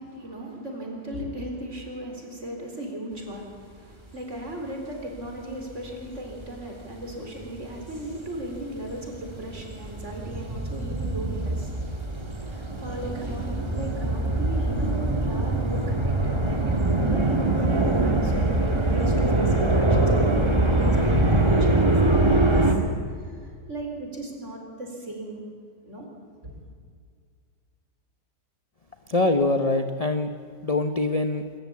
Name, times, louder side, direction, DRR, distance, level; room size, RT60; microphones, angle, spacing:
voice 1, 0.0-11.7 12.5-22.5 23.7-25.4 25.8-26.1 26.4-26.6, right 1 dB, 45° right, 1 dB, 4.4 m, -36 dB
sound 1, 6.2-6.4 7.0-22.7, right 2 dB, 15° right, 1.9 m, -23 dB
voice 2, 29.1-30.3 30.6-31.5, left 2 dB, 30° left, 7 dB, 0.8 m, -23 dB
26.5 x 14.0 x 8.6 m, 2.1 s
omnidirectional pair, 1.8 m